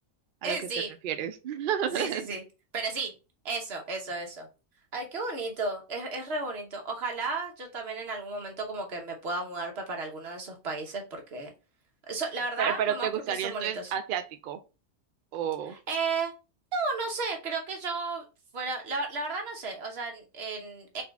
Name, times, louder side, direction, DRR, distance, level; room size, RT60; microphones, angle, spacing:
voice 1, 0.4-0.9 1.9-2.4 2.7-3.1 3.4-4.5 4.9-11.5 12.1-13.9 15.9-16.3 16.7-18.2 18.5-21.0, right 3 dB, 50° right, 1.1 m, -33 dB
voice 2, 1.0-2.3 12.6-14.6 15.3-15.8, right 9 dB, 90° right, 0.4 m, -30 dB
4.0 x 2.4 x 3.4 m
omnidirectional pair, 1.4 m